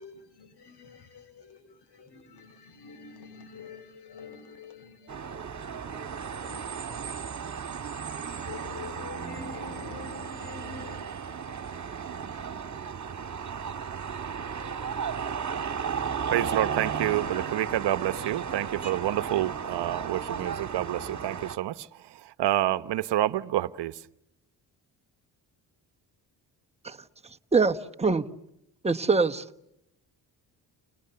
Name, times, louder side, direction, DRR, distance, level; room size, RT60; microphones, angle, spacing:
voice 1, 0.0-7.0 8.5-11.0, left 4 dB, 65° left, 5.7 m, -46 dB
sound 1, 5.1-21.6, right 6 dB, 40° right, 1.9 m, -35 dB
voice 2, 16.3-21.7 22.4-23.9, right 13 dB, 65° right, 1.1 m, -28 dB
voice 3, 27.5-28.2 28.8-29.4, right 4 dB, 15° right, 1.3 m, -23 dB
30.0 x 29.0 x 6.9 m
supercardioid pair, 60°, 44 cm